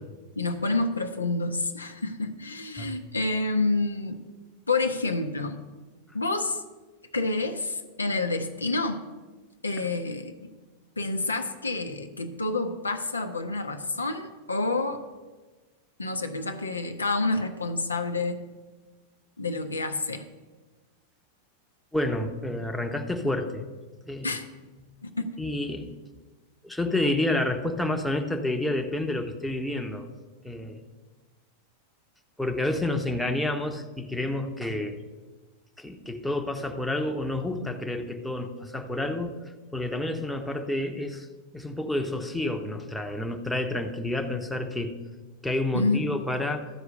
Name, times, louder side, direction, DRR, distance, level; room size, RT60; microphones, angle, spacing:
voice 1, 0.4-4.2 4.7-5.6 6.1-6.6 7.1-9.1 9.6-10.3 11.0-15.0 16.0-18.4 19.4-20.3 24.2-24.5 25.0-25.3 45.7-46.1, left 3 dB, 80° left, 6 dB, 0.7 m, -28 dB
voice 2, 21.9-23.6 24.0-24.3 25.4-25.9 26.6-30.1 30.4-30.8 32.4-35.0 35.8-39.3 39.7-41.3 41.5-45.0 45.4-46.7, left 1 dB, 5° left, 4 dB, 0.9 m, -29 dB
13.5 x 4.7 x 6.5 m, 1.3 s
figure-of-eight pair, 90°, 0 cm